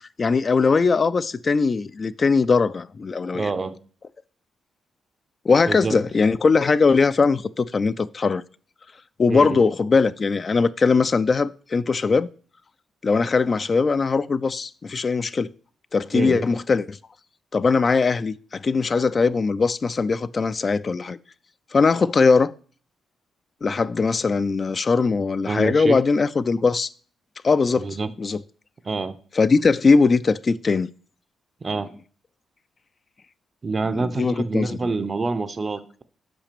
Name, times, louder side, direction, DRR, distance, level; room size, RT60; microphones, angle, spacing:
voice 1, 0.2-3.5 5.5-8.4 9.2-12.3 13.0-15.5 15.9-17.0 17.5-21.2 21.7-22.5 23.6-26.9 27.4-27.9 28.2-28.4 29.4-30.9 34.0-34.7, left 4 dB, 35° left, 0.3 m, -20 dB
voice 2, 3.3-3.8 5.7-6.0 9.3-9.6 16.1-16.4 25.5-26.0 27.8-28.1 28.8-29.2 31.6-31.9 33.6-36.0, right 3 dB, 30° right, 0.6 m, -26 dB
6.0 x 5.0 x 6.7 m
cardioid pair, 95°, 0 cm